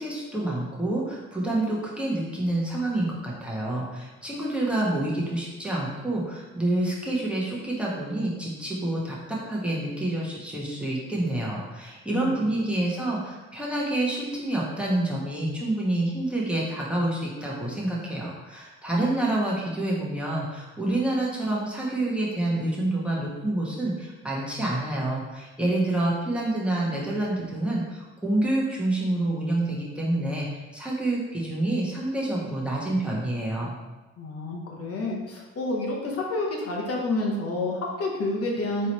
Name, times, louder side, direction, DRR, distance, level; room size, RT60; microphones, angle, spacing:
voice 1, 0.0-33.8, right 1 dB, 5° right, -5 dB, 1.1 m, -28 dB
voice 2, 34.2-38.9, left 2 dB, 50° left, -2 dB, 0.9 m, -29 dB
3.8 x 3.2 x 4.1 m, 1.1 s
cardioid pair, 90°, 30 cm